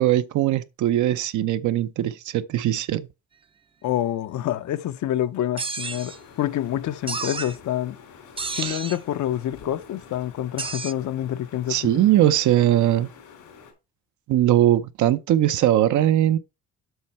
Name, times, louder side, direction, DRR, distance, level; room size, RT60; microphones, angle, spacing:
voice 1, 0.0-3.1 8.5-8.8 11.7-13.1 14.3-16.4, right 12 dB, 75° right, 0.7 m, -20 dB
voice 2, 3.8-8.0 8.5-11.9, left 12 dB, 70° left, 0.7 m, -27 dB
sound 1, 5.6-6.2 7.1-7.6 8.4-9.0 10.6-10.9, right 4 dB, 20° right, 0.4 m, -31 dB
sound 2, 5.8-13.7, left 6 dB, 90° left, 3.6 m, -47 dB
8.1 x 5.5 x 4.3 m
cardioid pair, 90°, 30 cm